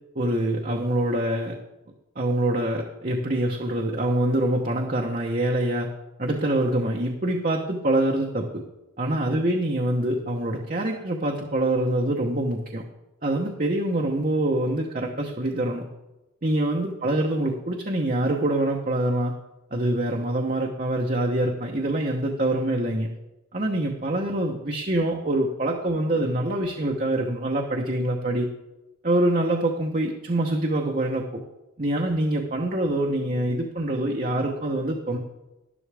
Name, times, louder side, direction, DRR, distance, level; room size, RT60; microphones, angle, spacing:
voice 1, 0.1-1.6 2.2-5.9 6.2-8.6 9.0-12.8 13.2-15.8 16.4-19.3 19.7-23.1 23.5-28.5 29.0-31.4 31.8-35.2, right 1 dB, 40° right, 0 dB, 1.0 m, -25 dB
12.5 x 11.0 x 3.5 m, 0.98 s
head